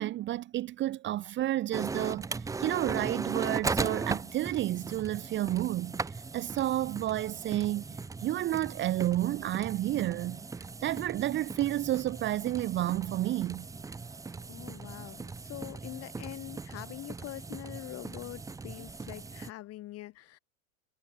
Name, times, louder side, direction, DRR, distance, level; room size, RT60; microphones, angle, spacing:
voice 1, 0.0-6.0 6.3-10.4 10.8-13.7, right 14 dB, 25° right, 1.4 m, -31 dB
sound 1, 1.7-19.5, right 4 dB, 5° right, 1.2 m, -38 dB
voice 2, 14.5-20.4, left 16 dB, 35° left, 7.6 m, -44 dB
supercardioid pair, 150°, 43 cm